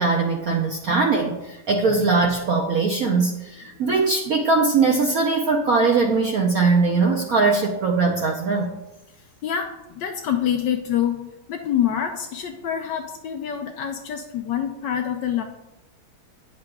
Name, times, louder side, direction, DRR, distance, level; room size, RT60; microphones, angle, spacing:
voice 1, 0.0-8.7, right 4 dB, 80° right, 0 dB, 0.8 m, -21 dB
voice 2, 9.4-15.4, left 9 dB, 75° left, 4 dB, 1.0 m, -26 dB
9.6 x 6.7 x 2.3 m, 0.97 s
omnidirectional pair, 2.3 m